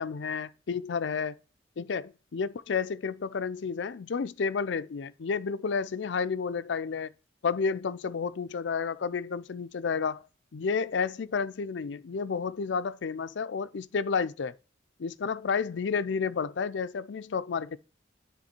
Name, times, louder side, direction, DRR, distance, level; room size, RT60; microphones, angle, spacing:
voice 1, 0.0-1.4 1.8-7.1 7.4-10.2 10.5-14.6 15.0-17.8, left 5 dB, 75° left, 0.4 m, -31 dB
9.7 x 3.6 x 4.4 m
head